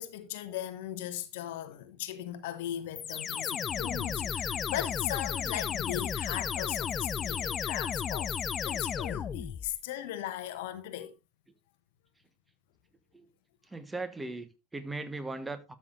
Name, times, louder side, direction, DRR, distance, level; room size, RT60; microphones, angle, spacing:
voice 1, 0.0-11.1, left 12 dB, 60° left, 0.9 m, -38 dB
sound 1, 2.9-9.8, left 7 dB, 30° left, 0.5 m, -33 dB
voice 2, 13.7-15.8, right 2 dB, 10° right, 1.2 m, -38 dB
12.5 x 6.6 x 2.6 m
figure-of-eight pair, 80°, 0 cm